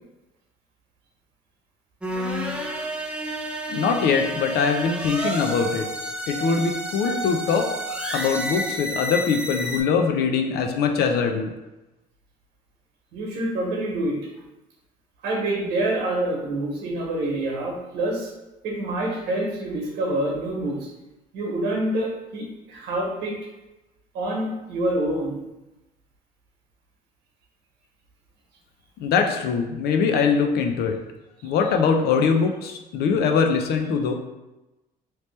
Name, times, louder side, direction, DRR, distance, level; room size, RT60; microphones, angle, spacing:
sound 1, 2.0-9.8, equal, 5° right, 0.5 m, -30 dB
voice 1, 3.7-5.9 6.3-7.7 8.1-11.5 29.0-31.0 31.4-34.1, left 5 dB, 70° left, 4 dB, 0.5 m, -22 dB
voice 2, 13.1-14.2 15.2-18.3 18.6-20.9 21.3-23.3 24.1-25.4 30.1-30.2 31.4-31.5, right 1 dB, 85° right, -1 dB, 1.2 m, -27 dB
3.1 x 2.9 x 3.2 m, 1.0 s
cardioid pair, 110°, 17 cm